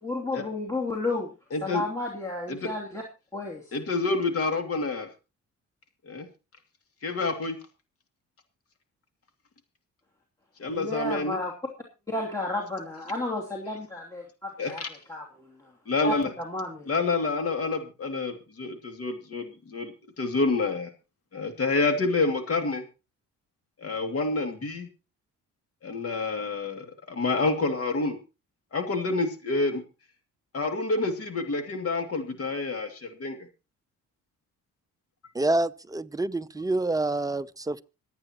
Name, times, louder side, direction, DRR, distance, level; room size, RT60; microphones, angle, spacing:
voice 1, 0.0-1.3 1.6-3.0 3.3-3.7 10.7-11.5 12.1-14.8 15.1-15.2 16.1-16.2 16.4-16.9, left 2 dB, 10° left, 2.9 m, -32 dB
voice 2, 1.5-1.8 2.5-2.7 3.7-5.1 6.1-6.3 7.0-7.6 10.6-11.4 14.6-14.9 15.9-16.3 16.9-20.9 21.3-22.8 23.8-24.9 25.8-28.2 28.7-29.8 30.5-33.4, left 3 dB, 50° left, 2.6 m, -28 dB
voice 3, 35.3-37.8, right 2 dB, 10° right, 0.6 m, -27 dB
25.5 x 8.8 x 3.0 m
cardioid pair, 90°, 30 cm